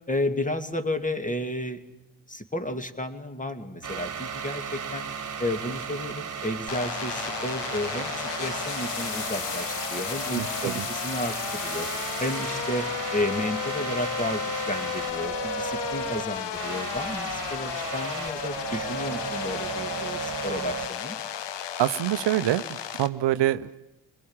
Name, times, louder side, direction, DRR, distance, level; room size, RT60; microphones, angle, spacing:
voice 1, 0.1-1.8 2.3-5.1 5.4-11.9 12.2-21.2, left 1 dB, 15° left, 7 dB, 2.3 m, -32 dB
sound 1, 3.8-20.9, right 7 dB, 40° right, 1.8 m, -35 dB
sound 2, 6.7-23.1, left 9 dB, 65° left, 1.2 m, -33 dB
voice 2, 10.4-10.9 21.8-23.8, right 13 dB, 65° right, 13 dB, 0.8 m, -26 dB
23.0 x 21.5 x 8.9 m, 0.96 s
hypercardioid pair, 50°, 45 cm